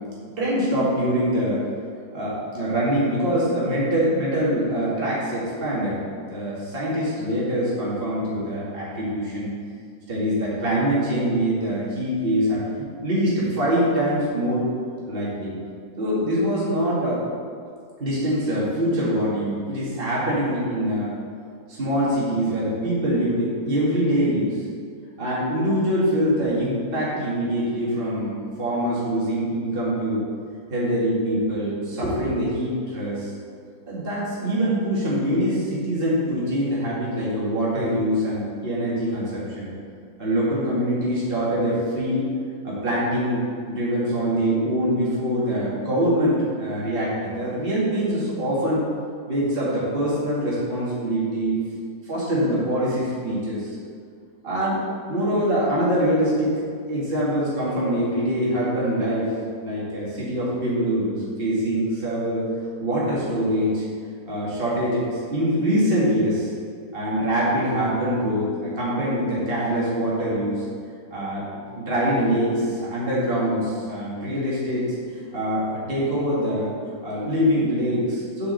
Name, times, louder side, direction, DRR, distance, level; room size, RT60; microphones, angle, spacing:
voice 1, 0.4-1.6 2.1-6.0 6.3-9.5 10.1-14.6 15.1-15.5 16.0-17.2 18.0-21.1 21.7-24.5 25.2-30.2 30.7-33.3 33.9-39.7 40.2-42.3 42.6-48.8 49.3-51.6 52.1-53.8 54.4-54.8 55.1-56.6 56.9-59.3 59.6-62.5 62.8-63.8 64.3-66.5 66.9-70.6 71.1-71.4 71.7-74.9 75.3-76.7 77.0-78.5, equal, 35° right, -7 dB, 2.4 m, -24 dB
8.1 x 5.6 x 6.9 m, 2.2 s
omnidirectional pair, 1.6 m